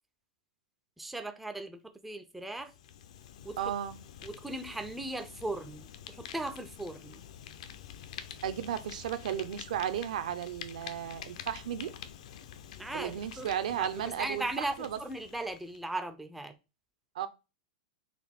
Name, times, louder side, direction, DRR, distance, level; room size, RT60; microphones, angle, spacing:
voice 1, 1.0-2.7 3.4-3.6 4.2-7.2 12.8-13.1 13.4-13.5 13.8-16.6, right 2 dB, 5° right, 0.3 m, -38 dB
Fire, 2.5-15.8, left 9 dB, 60° left, 0.5 m, -48 dB
voice 2, 3.6-4.0 8.4-11.9 12.9-14.5 14.8-15.0 17.1-17.3, right 10 dB, 75° right, 0.5 m, -34 dB
4.0 x 2.6 x 3.4 m
supercardioid pair, 150°, 4 cm